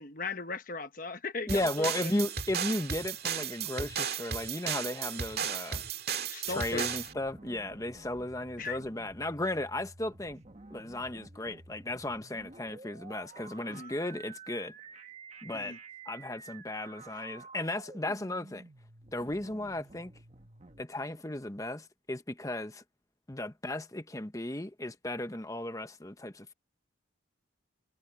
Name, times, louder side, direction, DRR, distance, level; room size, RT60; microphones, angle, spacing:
voice 1, 0.0-2.1 6.3-7.0 8.6-8.8 13.7-13.9 15.5-15.8, left 4 dB, 45° left, 1.1 m, -38 dB
voice 2, 1.5-5.8 6.5-10.4 10.7-14.7 15.4-15.8 16.1-18.6 19.1-20.1 20.8-22.8 23.3-26.5, left 1 dB, 15° left, 0.9 m, -35 dB
sound 1, 1.5-7.1, right 8 dB, 55° right, 2.0 m, -35 dB
sound 2, 6.5-20.8, right 3 dB, 35° right, 1.5 m, -51 dB
head